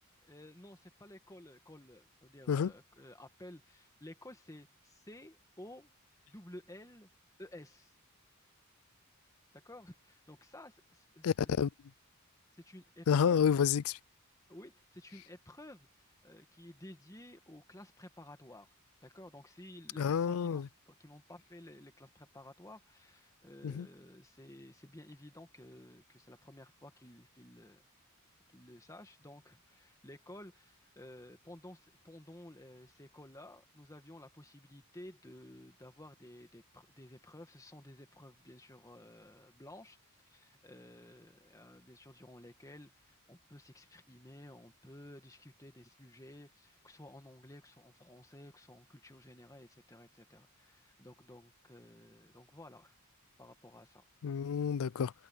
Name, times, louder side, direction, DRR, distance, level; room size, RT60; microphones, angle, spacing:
voice 1, 0.2-5.9 6.3-7.1 7.4-7.9 9.5-11.5 12.6-13.6 14.5-18.7 19.0-27.8 28.5-40.0 40.3-53.0 53.4-54.0, left 1 dB, 15° left, 2.0 m, -54 dB
voice 2, 11.2-11.7 13.1-14.0 20.0-20.7 23.6-23.9 54.2-55.1, left 7 dB, 70° left, 0.4 m, -29 dB
head